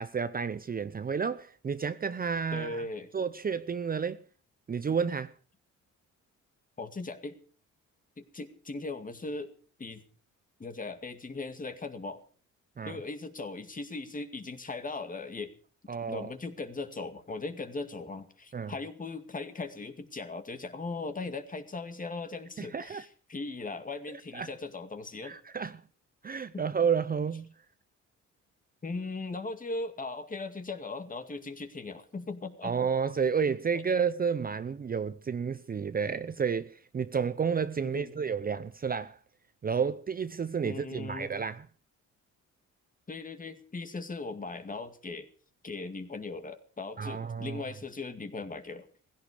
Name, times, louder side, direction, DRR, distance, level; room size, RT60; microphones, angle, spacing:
voice 1, 0.0-2.8 3.1-4.2 4.7-5.3 12.8-13.0 15.9-16.3 18.5-18.7 22.6-23.0 24.3-24.5 25.2-25.8 26.2-27.5 32.6-39.2 39.6-41.6 47.0-47.6, right 6 dB, 30° right, 0.7 m, -31 dB
voice 2, 2.5-3.1 6.8-7.4 8.2-9.5 9.8-10.0 10.6-12.2 12.9-15.5 16.1-25.4 26.5-26.7 28.8-32.8 37.9-38.2 40.6-41.3 43.1-45.3 45.6-48.9, left 3 dB, 25° left, 2.2 m, -38 dB
17.5 x 16.0 x 5.0 m
cardioid pair, 90°, 30 cm